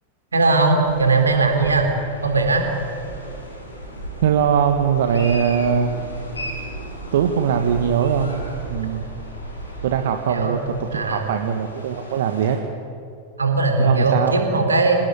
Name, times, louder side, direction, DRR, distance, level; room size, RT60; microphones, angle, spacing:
voice 1, 0.3-1.9 2.2-2.6 10.3-11.3 13.4-15.0, right 3 dB, 75° right, 4 dB, 4.0 m, -19 dB
sound 1, 0.8-12.6, right 1 dB, 80° left, 6.7 m, -35 dB
voice 2, 4.2-6.0 7.1-8.4 8.7-9.0 9.8-12.6 13.8-14.4, right 8 dB, 55° right, 5 dB, 1.6 m, -21 dB
27.0 x 19.0 x 9.8 m, 2.4 s
figure-of-eight pair, 90°, 0 cm